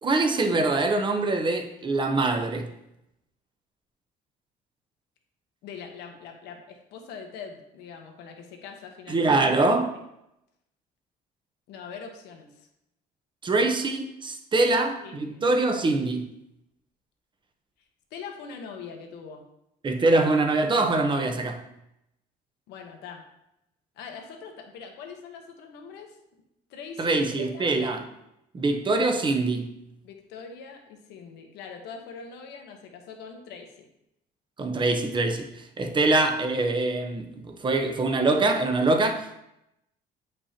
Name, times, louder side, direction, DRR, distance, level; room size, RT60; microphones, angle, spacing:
voice 1, 0.0-2.7 9.1-9.9 13.4-16.3 19.8-21.6 27.0-28.0 28.5-29.7 34.6-35.5 35.8-39.4, right 2 dB, 30° right, 0.9 m, -24 dB
voice 2, 5.6-9.3 11.7-12.7 14.6-14.7 15.0-15.2 18.1-19.4 22.7-23.2 24.0-26.2 26.7-27.2 27.5-27.7 30.0-33.9 35.8-36.0, left 6 dB, 85° left, 1.1 m, -42 dB
8.3 x 5.3 x 2.9 m
cardioid pair, 110°, 17 cm